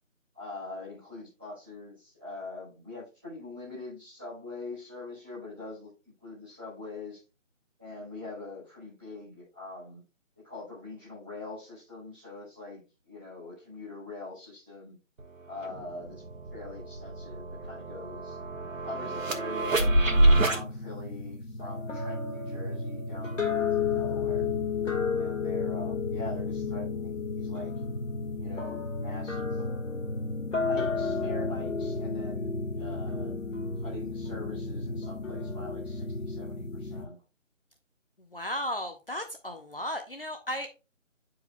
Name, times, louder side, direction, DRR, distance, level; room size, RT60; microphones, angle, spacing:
voice 1, 0.3-5.9 6.2-7.2 7.8-10.0 10.3-14.9 15.5-16.2 16.5-18.4 18.8-19.9 20.2-24.5 25.2-27.7 28.3-29.6 30.6-33.3 33.8-37.2, left 2 dB, 10° right, -12 dB, 1.4 m, -43 dB
sound 1, 15.2-15.3 15.6-20.6, right 1 dB, 80° right, 1.2 m, -27 dB
sound 2, 19.8-37.0, left 4 dB, 70° left, 1.7 m, -32 dB
voice 2, 38.3-40.7, equal, 45° left, 6 dB, 0.7 m, -35 dB
9.5 x 4.8 x 2.2 m, 0.29 s
figure-of-eight pair, 180°, 39 cm